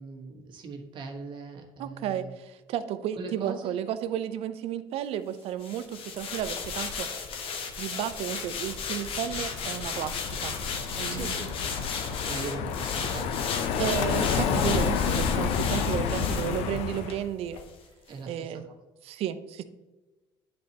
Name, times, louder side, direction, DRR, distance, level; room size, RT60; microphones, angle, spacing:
voice 1, 0.0-2.3 3.2-3.8 11.0-11.5 12.3-13.4 18.1-18.5, right 4 dB, 50° right, 1 dB, 1.4 m, -40 dB
voice 2, 1.8-7.1 7.8-10.5 11.0-11.3 13.8-17.6 18.3-18.7 19.0-19.6, right 10 dB, 65° right, 11 dB, 0.6 m, -33 dB
sound 1, 5.6-17.2 17.5-17.7, left 5 dB, 60° left, 1.0 m, -35 dB
Car passing by, 8.7-17.2, left 6 dB, 75° left, 0.6 m, -30 dB
9.9 x 4.3 x 2.9 m, 1.2 s
cardioid pair, 115°, 11 cm